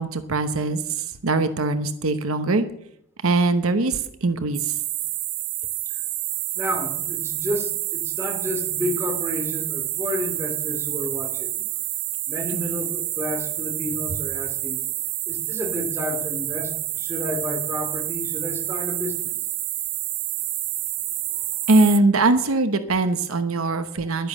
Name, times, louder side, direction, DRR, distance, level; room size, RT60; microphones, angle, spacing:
voice 1, 0.0-2.7 3.2-4.7 12.5-12.7 21.7-24.3, right 3 dB, 75° right, 10 dB, 1.0 m, -22 dB
sound 1, 4.5-22.0, right 15 dB, 50° right, 0.6 m, -28 dB
voice 2, 6.5-11.6 12.3-14.8 15.3-19.4, left 1 dB, 10° right, 3 dB, 2.6 m, -31 dB
11.0 x 10.5 x 7.4 m, 0.73 s
head